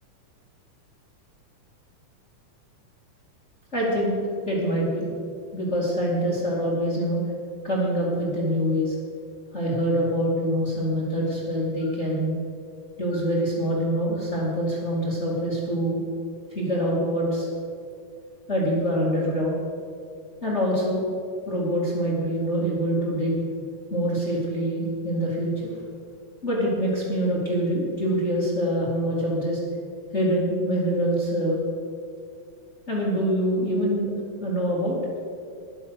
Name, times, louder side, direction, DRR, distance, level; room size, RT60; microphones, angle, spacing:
voice 1, 3.7-4.2 4.5-5.1 5.5-7.2 7.6-8.9 9.5-12.3 13.0-16.0 16.5-17.5 18.5-19.6 20.4-21.0 21.5-23.4 23.9-25.7 26.4-29.6 30.1-31.6 32.9-34.1 34.4-35.0, equal, 25° left, -4 dB, 2.4 m, -25 dB
13.0 x 11.0 x 6.5 m, 2.3 s
omnidirectional pair, 3.6 m